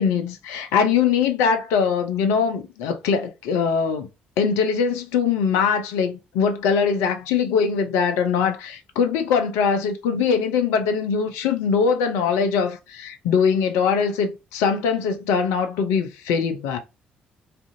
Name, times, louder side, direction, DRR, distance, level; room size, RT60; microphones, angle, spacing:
voice 1, 0.0-4.1 4.4-16.8, left 6 dB, 70° left, 0.4 m, -22 dB
2.5 x 2.4 x 2.5 m
figure-of-eight pair, 45°, 5 cm